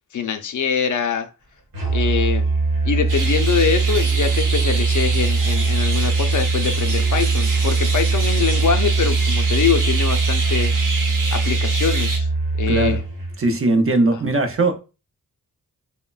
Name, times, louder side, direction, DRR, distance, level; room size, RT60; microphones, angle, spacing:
voice 1, 0.1-1.3 1.9-2.4 2.8-10.8 11.3-12.3 12.6-13.0, left 7 dB, 60° left, 0.4 m, -23 dB
Musical instrument, 1.7-13.5, right 4 dB, 90° right, 1.1 m, -21 dB
sound 1, 3.1-12.2, right 3 dB, 60° right, 0.9 m, -28 dB
voice 2, 12.7-13.0 13.4-14.8, right 2 dB, 40° right, 0.5 m, -19 dB
3.0 x 2.0 x 2.3 m
cardioid pair, 65°, 35 cm